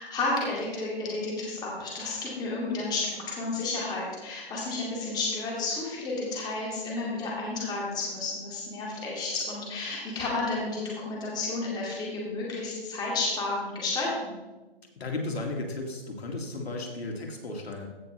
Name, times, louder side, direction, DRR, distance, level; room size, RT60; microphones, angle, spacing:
voice 1, 0.0-14.3, left 3 dB, 15° left, -4 dB, 2.4 m, -31 dB
voice 2, 15.0-17.9, left 2 dB, 90° left, 2 dB, 2.3 m, -34 dB
16.0 x 6.5 x 3.3 m, 1.2 s
hypercardioid pair, 155°, 30 cm